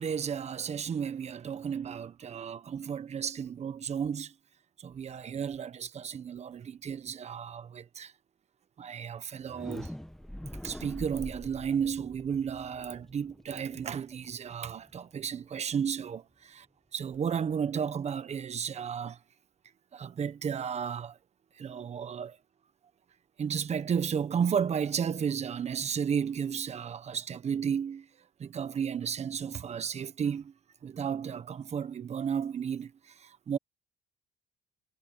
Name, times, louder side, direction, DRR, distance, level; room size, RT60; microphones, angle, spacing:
voice 1, 0.0-4.3 4.8-8.1 8.8-9.9 10.6-16.7 16.9-19.2 19.9-21.2 21.6-22.4 23.4-28.1 28.4-30.5 30.8-33.6, right 7 dB, 40° right, 1.3 m, -33 dB
sound 1, 9.4-15.2, equal, ahead, 1.2 m, -44 dB
cardioid pair, 110°, 17 cm